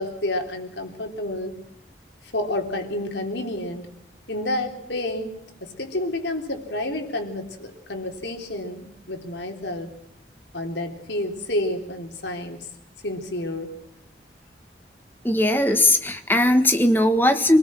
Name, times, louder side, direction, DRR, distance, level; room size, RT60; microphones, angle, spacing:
voice 1, 0.0-1.6 2.3-3.9 4.3-5.3 5.6-9.9 10.5-12.7 13.0-13.7, left 1 dB, 85° left, 3 dB, 3.8 m, -29 dB
voice 2, 15.2-17.6, left 1 dB, 10° left, 8 dB, 1.5 m, -19 dB
26.0 x 20.0 x 6.3 m, 0.74 s
head